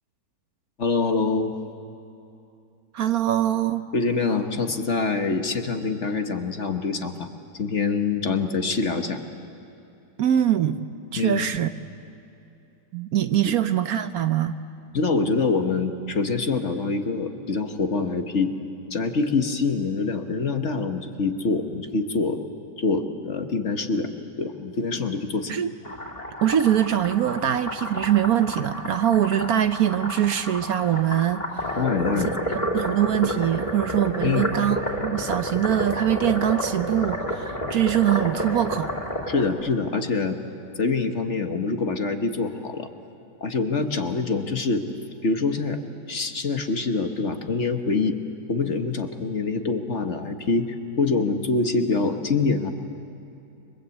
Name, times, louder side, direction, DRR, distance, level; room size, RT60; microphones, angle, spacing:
voice 1, 0.8-1.5 3.9-7.3 7.5-9.2 11.1-11.5 13.4-13.6 14.9-18.5 18.9-22.4 22.8-24.1 24.4-25.6 31.8-32.3 34.2-34.5 39.3-40.4 40.8-42.9 43.4-44.8 45.2-45.8 46.1-48.2 48.5-52.7, left 4 dB, 45° left, 6 dB, 1.5 m, -25 dB
voice 2, 2.9-3.9 10.2-10.8 11.1-11.7 12.9-14.5 25.5-25.7 26.4-31.8 32.7-38.9, right 11 dB, 65° right, 10 dB, 1.2 m, -23 dB
sound 1, 25.8-39.5, equal, 25° left, 3.2 m, -30 dB
30.0 x 23.5 x 8.3 m, 2.8 s
omnidirectional pair, 1.8 m